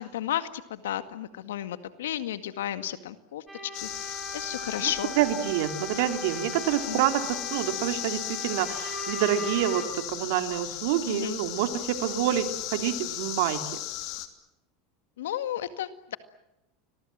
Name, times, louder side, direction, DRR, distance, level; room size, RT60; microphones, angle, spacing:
voice 1, 0.0-3.4 3.8-5.1 6.9-7.0 11.1-11.4 15.2-16.2, left 11 dB, 85° left, 11 dB, 1.9 m, -33 dB
sound 1, 3.5-9.9, left 1 dB, 10° right, 4.4 m, -39 dB
sound 2, 3.7-14.3, left 15 dB, 60° left, 2.9 m, -36 dB
voice 2, 4.8-13.6, right 11 dB, 70° right, 7 dB, 3.1 m, -27 dB
30.0 x 22.5 x 7.6 m, 0.91 s
hypercardioid pair, 100°, 0 cm